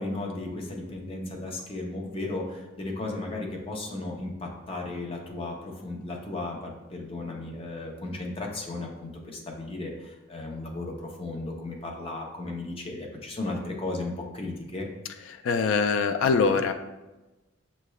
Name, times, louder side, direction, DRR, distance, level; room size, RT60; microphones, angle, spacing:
voice 1, 0.0-14.9, left 2 dB, 30° left, 0 dB, 0.7 m, -35 dB
voice 2, 15.3-16.7, left 5 dB, 75° left, 7 dB, 0.3 m, -23 dB
6.5 x 3.1 x 2.3 m, 1.1 s
head